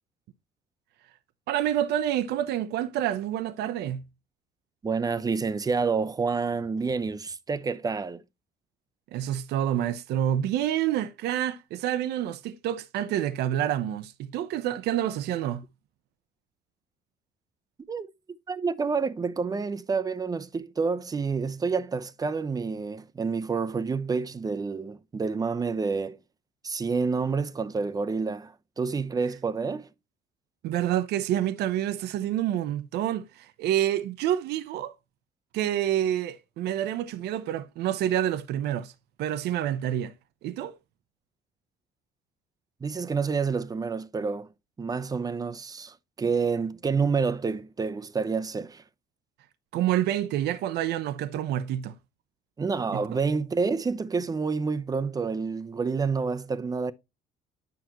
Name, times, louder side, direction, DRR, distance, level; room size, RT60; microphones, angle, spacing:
voice 1, 1.5-4.0 9.1-15.6 30.6-34.9 35.5-38.9 39.2-40.1 40.4-40.8 49.7-52.0 52.9-53.2, right 11 dB, 75° right, 0.7 m, -28 dB
voice 2, 4.8-8.2 17.9-18.1 18.5-26.2 26.6-29.9 42.8-44.5 44.8-48.8 52.6-56.9, right 5 dB, 20° right, 0.7 m, -28 dB
9.4 x 5.9 x 2.9 m
cardioid pair, 110°, 17 cm